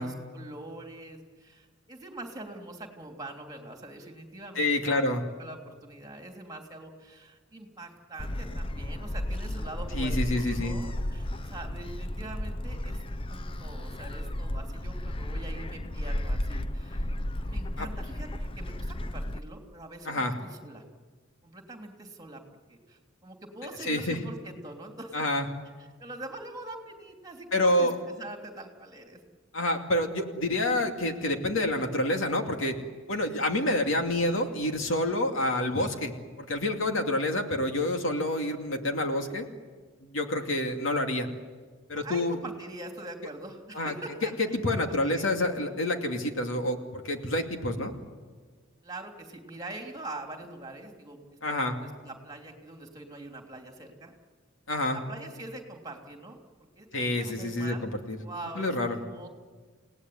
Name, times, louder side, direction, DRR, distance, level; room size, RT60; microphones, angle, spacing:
voice 1, 0.0-5.0 5.3-13.0 13.3-17.1 17.5-20.8 21.4-22.4 22.7-25.3 25.8-29.2 41.9-45.7 48.8-51.2 51.4-54.1 54.9-56.4 56.8-57.8 58.2-59.3, right 2 dB, 20° right, 3 dB, 3.2 m, -44 dB
voice 2, 4.6-5.2 9.9-10.8 17.8-17.9 20.0-20.3 23.8-24.2 25.1-25.5 27.5-28.0 29.5-32.8 33.1-39.5 40.0-41.3 41.9-42.4 43.7-43.9 44.4-47.9 51.4-51.7 54.7-55.0 56.9-58.2 58.5-59.0, left 1 dB, 70° left, 4 dB, 2.5 m, -28 dB
Gull seagull, 8.2-19.4, left 1 dB, 25° left, 0.7 m, -33 dB
30.0 x 18.0 x 9.5 m, 1.4 s
head